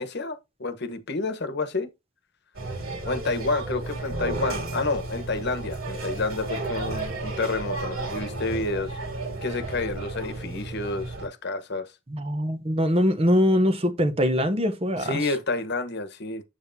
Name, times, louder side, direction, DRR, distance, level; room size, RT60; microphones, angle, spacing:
voice 1, 0.0-1.9 3.1-8.9 9.4-11.9 15.0-16.4, left 3 dB, 50° left, 1.2 m, -29 dB
sound 1, 2.5-11.3, right 2 dB, 80° right, 2.8 m, -33 dB
voice 2, 12.1-15.2, equal, 25° right, 0.9 m, -22 dB
8.1 x 7.8 x 2.7 m
head